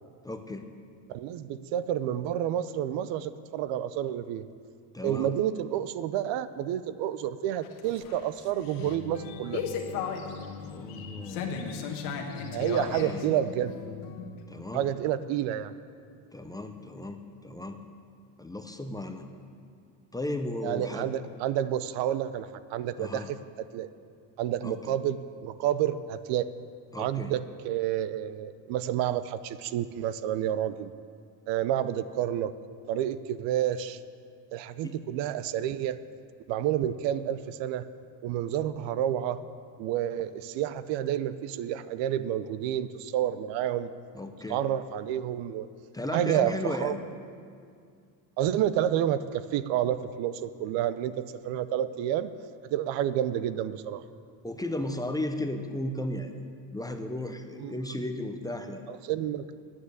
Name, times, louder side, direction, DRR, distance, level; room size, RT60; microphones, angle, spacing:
voice 1, 0.2-0.7 4.9-5.3 10.6-11.6 12.9-13.2 14.5-14.9 16.3-17.8 18.4-19.2 20.1-21.1 23.0-23.3 24.6-24.8 26.9-27.3 34.8-34.9 44.1-44.6 45.9-47.0 54.4-56.3 56.7-58.8, left 1 dB, 10° left, 6 dB, 0.5 m, -35 dB
voice 2, 1.1-4.5 5.0-9.6 12.5-13.8 14.7-15.7 20.6-23.9 24.4-26.5 27.0-30.9 31.5-32.5 32.9-34.0 34.5-36.0 36.5-37.9 38.2-39.4 39.8-43.9 44.5-45.7 46.1-46.9 48.4-52.3 52.6-54.0 57.6-57.8 58.9-59.5, right 11 dB, 70° right, 14 dB, 0.6 m, -29 dB
sound 1, 7.6-14.4, left 6 dB, 90° left, 1.4 m, -36 dB
9.6 x 8.9 x 8.2 m, 2.3 s
cardioid pair, 120°, 45 cm